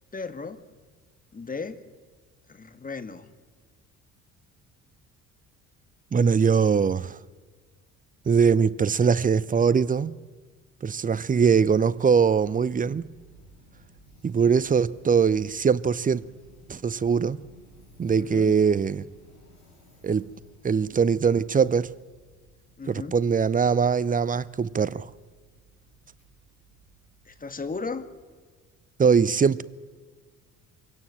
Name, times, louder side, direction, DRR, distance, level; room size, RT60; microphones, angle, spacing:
voice 1, 0.1-0.6 1.3-1.8 2.5-3.3 11.2-11.7 18.2-18.5 22.8-23.2 27.2-28.1, left 4 dB, 20° left, 1.8 m, -36 dB
voice 2, 6.1-7.2 8.3-10.1 10.8-13.1 14.2-16.2 16.7-17.4 18.0-19.0 20.0-20.3 20.6-21.9 22.9-25.1 29.0-29.6, right 6 dB, 20° right, 0.7 m, -22 dB
sound 1, 11.7-28.2, right 1 dB, 85° left, 7.0 m, -57 dB
25.0 x 17.0 x 7.6 m
figure-of-eight pair, 50°, 41 cm